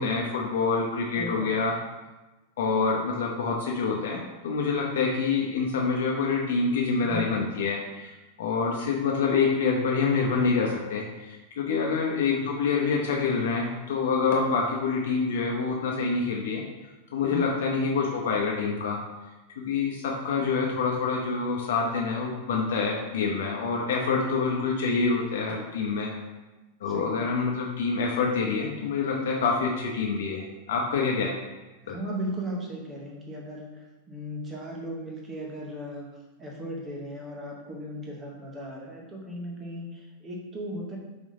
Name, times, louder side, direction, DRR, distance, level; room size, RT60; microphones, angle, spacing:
voice 1, 0.0-1.8 2.6-8.1 8.4-16.6 17.1-19.0 19.6-26.1 26.8-31.4 31.9-32.0, left 4 dB, 75° left, 0 dB, 0.6 m, -26 dB
voice 2, 1.2-1.6 7.0-7.4 11.7-12.1 17.3-17.6 26.9-27.4 31.8-36.1 36.4-41.0, equal, 15° right, -1 dB, 0.7 m, -37 dB
4.0 x 3.4 x 3.6 m, 1.1 s
supercardioid pair, 170°, 0 cm